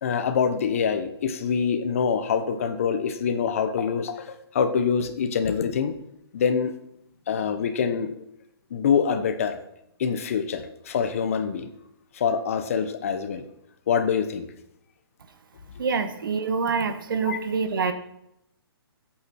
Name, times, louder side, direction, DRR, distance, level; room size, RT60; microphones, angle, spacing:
voice 1, 0.0-5.9 6.3-6.7 7.3-8.2 8.7-9.6 10.0-11.7 12.1-13.4 13.9-14.5 17.2-17.4, left 6 dB, 35° left, 10 dB, 0.8 m, -25 dB
voice 2, 15.8-17.9, right 5 dB, 55° right, 9 dB, 1.3 m, -26 dB
15.5 x 8.6 x 4.2 m, 0.79 s
hypercardioid pair, 170°, 13 cm